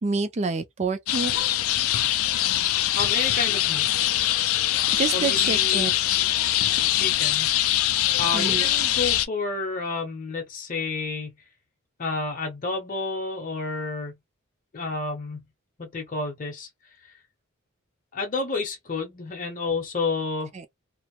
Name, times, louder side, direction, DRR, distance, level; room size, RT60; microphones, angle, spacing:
voice 1, 0.0-1.3 4.9-5.9 8.3-8.7 20.5-20.7, right 4 dB, 30° right, 0.4 m, -27 dB
sound 1, 1.1-9.3, left 13 dB, 75° left, 0.3 m, -23 dB
voice 2, 3.0-3.9 5.1-5.9 6.9-7.5 8.2-11.3 12.0-14.2 14.7-15.4 15.8-16.7 18.1-20.5, left 3 dB, 40° left, 0.7 m, -30 dB
2.5 x 2.0 x 2.9 m
head